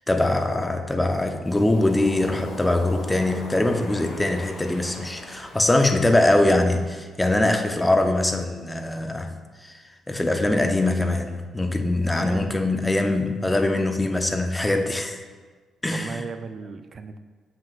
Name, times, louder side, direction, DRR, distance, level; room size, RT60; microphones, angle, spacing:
voice 1, 0.1-9.8 10.1-15.2 15.8-16.2, left 2 dB, 15° left, 5 dB, 0.6 m, -22 dB
Waves surf, 1.4-6.9, left 2 dB, 50° left, 1.2 m, -39 dB
voice 2, 15.9-17.2, right 5 dB, 45° right, 8 dB, 0.3 m, -36 dB
7.1 x 5.8 x 2.4 m, 1.4 s
cardioid pair, 90°, 0 cm